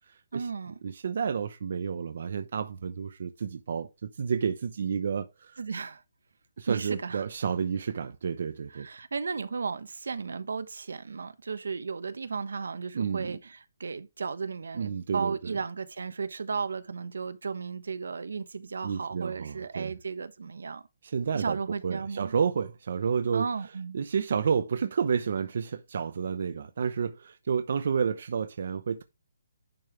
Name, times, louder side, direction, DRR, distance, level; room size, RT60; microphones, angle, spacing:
voice 1, 0.3-0.8 5.6-6.0 6.7-7.2 8.7-20.8 21.3-22.3 23.3-24.0, right 5 dB, 75° right, 1.2 m, -34 dB
voice 2, 0.8-5.5 6.6-8.9 12.9-13.4 14.7-15.6 18.8-19.9 21.0-23.5 23.9-29.0, right 6 dB, 45° right, 0.8 m, -30 dB
10.5 x 5.5 x 3.4 m
hypercardioid pair, 175°, 0 cm